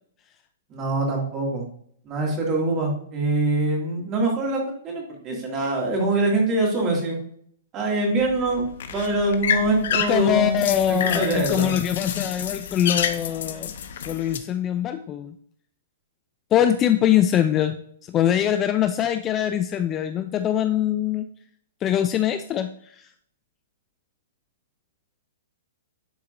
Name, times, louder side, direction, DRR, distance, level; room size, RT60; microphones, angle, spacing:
voice 1, 0.7-1.6 2.1-7.2 7.7-11.7, right 2 dB, 25° right, -1 dB, 2.1 m, -24 dB
sound 1, 8.2-14.4, left 8 dB, 65° left, 0.8 m, -29 dB
voice 2, 10.1-13.7 14.0-15.3 16.5-21.3 21.8-23.1, left 10 dB, 20° left, 9 dB, 0.3 m, -23 dB
10.5 x 4.2 x 2.5 m, 0.64 s
hypercardioid pair, 160°, 0 cm